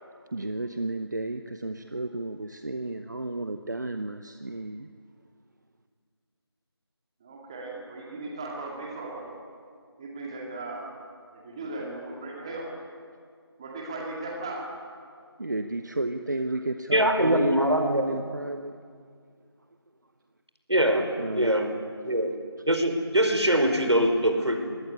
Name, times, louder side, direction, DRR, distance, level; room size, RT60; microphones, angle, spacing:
voice 1, 0.0-4.9 15.4-18.8 21.2-21.6, right 2 dB, 45° right, 8 dB, 1.0 m, -32 dB
voice 2, 7.2-9.3 10.0-10.8 11.4-12.7 13.6-14.6, right 2 dB, 10° right, -1 dB, 2.2 m, -37 dB
voice 3, 16.9-18.1 20.7-21.7 22.0-22.4 22.7-24.7, equal, 85° right, 6 dB, 4.9 m, -23 dB
26.5 x 20.5 x 9.7 m, 2.1 s
figure-of-eight pair, 170°, 14 cm